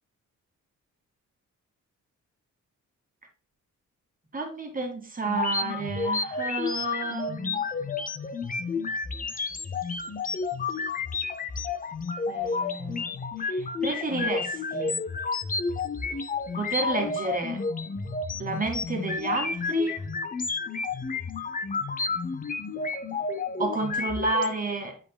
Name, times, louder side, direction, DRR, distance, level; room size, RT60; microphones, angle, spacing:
voice 1, 4.3-7.7 12.3-15.0 16.6-17.6 18.4-20.1 23.6-25.0, right 3 dB, 25° right, 1.9 m, -31 dB
sound 1, 5.3-24.5, left 4 dB, 25° left, 0.6 m, -31 dB
8.3 x 5.2 x 2.2 m
wide cardioid pair, 125°, 31 cm